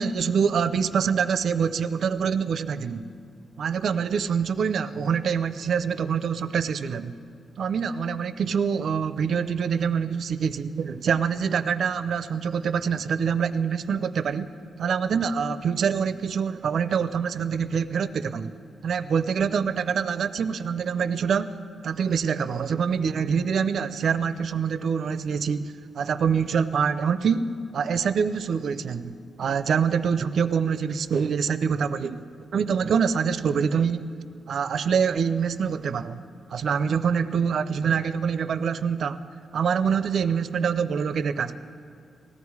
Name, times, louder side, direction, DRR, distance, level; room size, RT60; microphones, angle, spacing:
voice 1, 0.0-3.1 3.6-7.1 7.6-14.5 14.8-18.5 18.8-32.2 32.5-34.1 34.5-36.2 36.5-39.2 39.5-41.6, right 6 dB, 65° right, 13 dB, 0.5 m, -25 dB
18.5 x 14.0 x 4.8 m, 2.3 s
wide cardioid pair, 125°, 0 cm